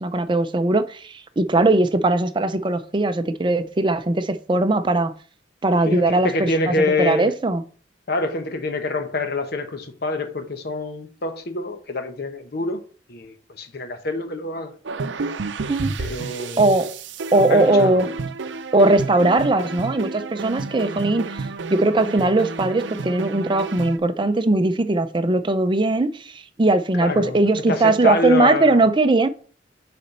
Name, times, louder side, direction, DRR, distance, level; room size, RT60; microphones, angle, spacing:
voice 1, 0.0-5.1 5.6-7.6 15.7-15.9 16.6-16.9 17.3-18.2 18.7-29.3, right 2 dB, 25° right, 0.5 m, -19 dB
voice 2, 5.8-7.3 8.1-12.8 13.1-14.7 16.0-16.7 17.5-18.0 27.0-28.8, left 2 dB, 60° left, 1.0 m, -26 dB
sound 1, 14.9-24.0, right 4 dB, 85° right, 0.6 m, -30 dB
6.9 x 4.3 x 5.4 m
head